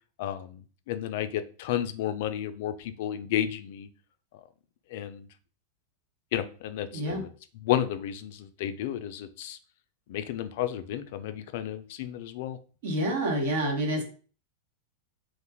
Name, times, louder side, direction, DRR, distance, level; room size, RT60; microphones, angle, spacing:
voice 1, 0.2-0.6 0.9-3.9 4.9-5.3 6.3-7.2 7.6-9.6 10.1-12.6, left 11 dB, 60° left, 10 dB, 0.3 m, -32 dB
voice 2, 6.9-7.2 12.8-14.0, right 1 dB, 75° right, 1 dB, 1.0 m, -28 dB
2.5 x 2.2 x 3.4 m, 0.39 s
supercardioid pair, 135°, 0 cm